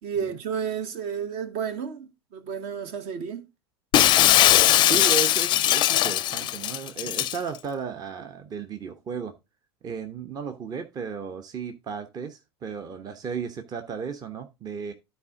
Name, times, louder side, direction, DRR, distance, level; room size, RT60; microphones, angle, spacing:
voice 1, 0.0-3.5, right 7 dB, 50° right, 1.2 m, -32 dB
Shatter, 3.9-7.4, left 13 dB, 35° left, 0.5 m, -20 dB
voice 2, 4.8-9.3 9.8-14.9, right 6 dB, 30° right, 1.0 m, -34 dB
12.5 x 4.4 x 3.7 m
figure-of-eight pair, 80°, 14 cm